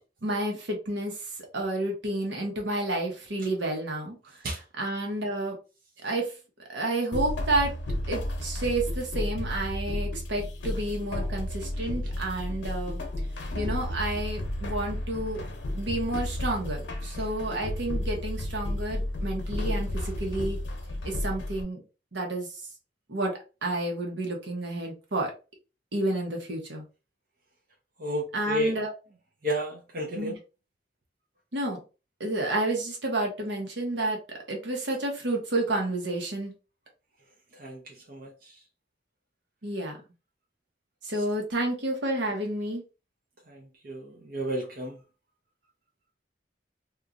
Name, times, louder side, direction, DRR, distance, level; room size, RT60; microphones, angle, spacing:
voice 1, 0.2-4.2 4.5-5.6 6.0-6.3 6.7-7.7 8.1-13.0 13.5-15.4 15.7-20.6 21.0-21.8 22.1-22.6 23.1-25.3 25.9-26.8 28.3-28.9 30.1-30.4 31.5-31.8 32.2-36.5 39.6-40.0 41.0-42.8, right 1 dB, 80° right, 0.9 m, -30 dB
sound 1, 7.1-21.6, left 1 dB, 85° left, 0.6 m, -32 dB
voice 2, 28.0-28.7 29.4-30.3 37.6-37.8 38.1-38.3 43.8-44.9, equal, 50° right, 0.6 m, -31 dB
2.9 x 2.4 x 2.5 m
head